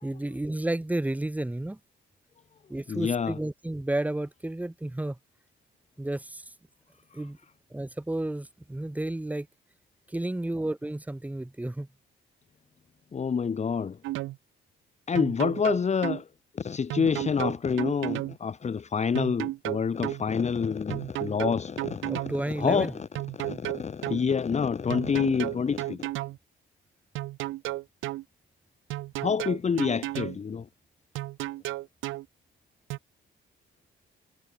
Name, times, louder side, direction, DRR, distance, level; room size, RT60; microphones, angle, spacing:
voice 1, 0.0-1.8 2.7-5.2 6.0-6.4 7.1-7.4 7.7-9.5 10.1-11.9 22.1-23.0, right 1 dB, 5° right, 1.5 m, -31 dB
voice 2, 2.9-3.4 13.1-14.0 15.1-16.3 16.5-22.3 22.6-22.9 23.3-26.1 29.2-30.7, left 6 dB, 35° left, 1.3 m, -27 dB
sound 1, 14.0-14.4 15.2-16.2 16.9-18.4 19.2-20.2 20.9-22.4 23.2-24.2 24.9-26.4 27.2-28.2 28.9-30.4 31.2-32.3 32.9-33.0, right 17 dB, 80° right, 0.5 m, -33 dB
cardioid pair, 90°, 20 cm